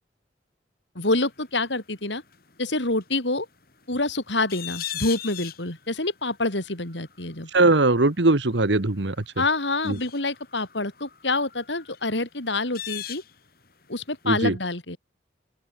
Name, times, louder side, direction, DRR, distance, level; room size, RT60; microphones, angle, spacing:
voice 1, 1.0-2.2 2.6-3.5 3.9-7.5 9.4-13.2 13.9-15.0, left 2 dB, 85° left, 5.6 m, -27 dB
sound 1, 1.1-14.1 14.3-14.4, left 12 dB, 55° left, 3.3 m, -41 dB
voice 2, 7.5-9.2 9.8-10.0 14.2-14.6, right 2 dB, 80° right, 1.5 m, -20 dB
open air
head